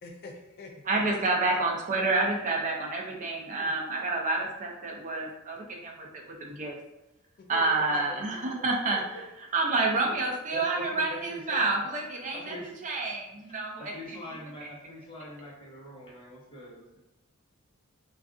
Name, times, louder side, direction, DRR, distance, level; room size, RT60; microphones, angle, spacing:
voice 1, 0.0-0.8 1.3-1.4 3.6-3.7 7.4-9.2, left 2 dB, 50° left, 2 dB, 0.4 m, -45 dB
voice 2, 0.9-6.1 6.4-6.8 7.5-9.0 9.5-12.6 12.8-13.9, right 3 dB, 35° right, 0 dB, 0.5 m, -28 dB
voice 3, 9.9-10.2 10.5-11.7 12.3-12.8 13.4-17.0, left 1 dB, 25° left, -3 dB, 0.7 m, -43 dB
2.4 x 2.3 x 3.6 m, 0.96 s
head